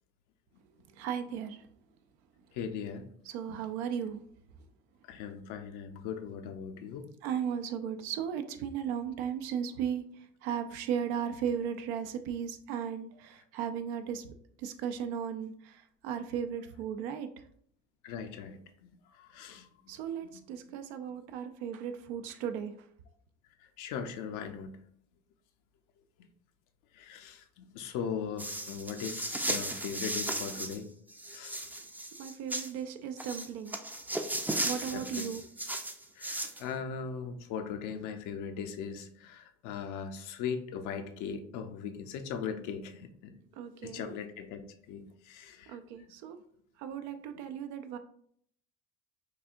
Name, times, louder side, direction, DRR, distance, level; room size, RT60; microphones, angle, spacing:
voice 1, 0.9-1.7 3.3-4.2 7.2-14.3 14.6-17.3 19.9-22.7 32.2-33.8 34.6-35.4 43.5-44.1 45.7-46.4 46.8-48.0, right 8 dB, 85° right, 8 dB, 0.5 m, -36 dB
voice 2, 2.5-3.1 5.1-7.1 18.0-19.7 20.3-20.4 23.6-24.8 26.9-30.9 31.3-31.7 34.6-35.3 36.2-43.4 43.8-44.6 44.9-45.8, left 7 dB, 70° left, 7 dB, 0.6 m, -39 dB
sound 1, 28.4-30.8 31.1-32.7 33.2-36.6, right 1 dB, 5° right, 0.4 m, -36 dB
4.7 x 2.7 x 2.5 m, 0.65 s
supercardioid pair, 70°, 32 cm